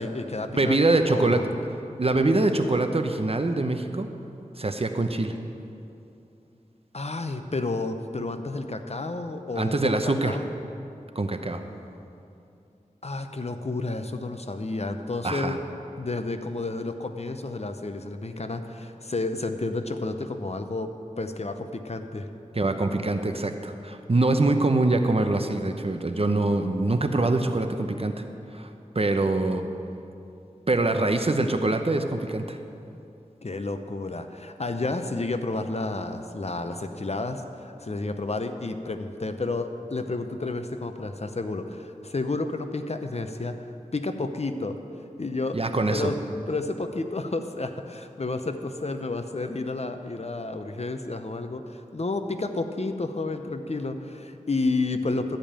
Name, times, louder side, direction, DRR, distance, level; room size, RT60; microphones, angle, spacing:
voice 1, 0.0-0.8 1.1-1.6 6.9-10.5 13.0-15.6 16.0-20.9 21.2-22.3 33.4-43.6 43.9-44.8 45.2-45.6 45.9-46.2 46.5-55.4, left 3 dB, 50° left, 7 dB, 0.7 m, -31 dB
voice 2, 0.6-1.5 2.0-4.1 4.6-5.4 9.6-10.4 11.2-11.6 15.2-15.6 22.5-28.1 28.5-29.6 30.7-32.6 45.5-46.1, right 2 dB, 45° right, 6 dB, 0.7 m, -24 dB
13.0 x 5.2 x 8.8 m, 2.7 s
wide cardioid pair, 55°, 14 cm